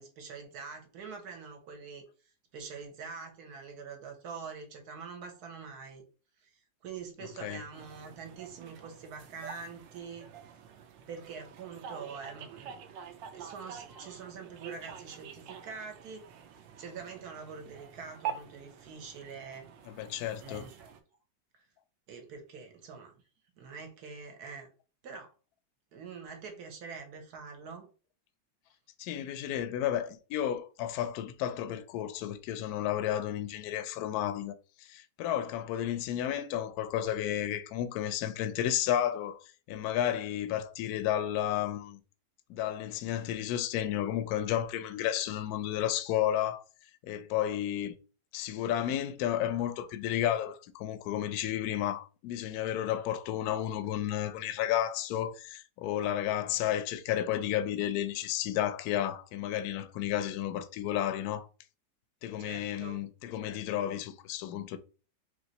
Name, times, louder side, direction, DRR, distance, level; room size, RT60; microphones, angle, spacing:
voice 1, 0.0-2.0 2.5-6.0 6.4-10.3 11.1-12.8 13.3-19.7 20.4-20.9 21.5-21.7 22.1-23.1 23.6-24.7 25.0-25.3 25.9-27.9 62.4-63.0, right 5 dB, 60° right, 1.4 m, -45 dB
sound 1, 7.7-21.0, right 8 dB, 90° right, 1.3 m, -46 dB
voice 2, 19.9-20.7 29.0-42.0 42.5-46.6 47.0-47.9 48.3-61.5 62.2-64.8, left 11 dB, 70° left, 0.9 m, -32 dB
3.5 x 3.2 x 4.0 m
omnidirectional pair, 2.0 m